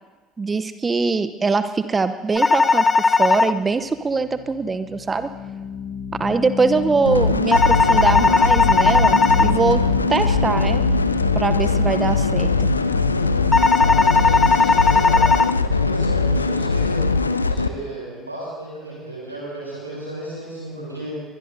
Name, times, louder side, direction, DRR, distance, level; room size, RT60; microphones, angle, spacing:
voice 1, 0.4-5.3 6.2-9.8 10.1-10.8 11.3-12.7, right 4 dB, 25° right, 11 dB, 0.8 m, -22 dB
sound 1, 2.4-3.5 7.5-9.5 13.5-15.5, left 4 dB, 20° left, 0.7 m, -17 dB
sound 2, 3.6-16.9, left 7 dB, 65° left, 1.7 m, -33 dB
sound 3, 7.0-17.7, left 3 dB, 85° left, 0.6 m, -20 dB
voice 2, 13.7-15.3 15.6-17.0 17.4-21.1, right 1 dB, 85° right, -6 dB, 6.6 m, -34 dB
24.0 x 21.0 x 2.8 m, 1.2 s
figure-of-eight pair, 60°, 0 cm